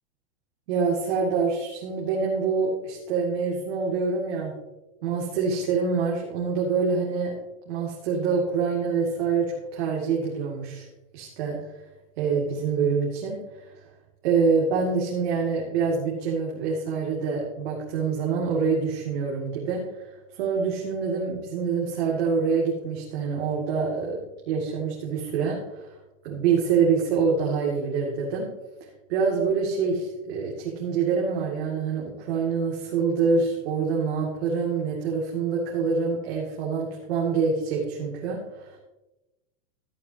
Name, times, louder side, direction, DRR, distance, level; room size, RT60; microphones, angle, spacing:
voice 1, 0.7-4.5 5.0-7.4 7.7-10.9 11.1-11.6 12.2-13.7 14.2-20.1 20.4-25.9 26.2-28.5 29.1-38.8, right 5 dB, 60° right, -3 dB, 2.4 m, -26 dB
13.5 x 11.0 x 2.8 m, 1.0 s
supercardioid pair, 155°, 35 cm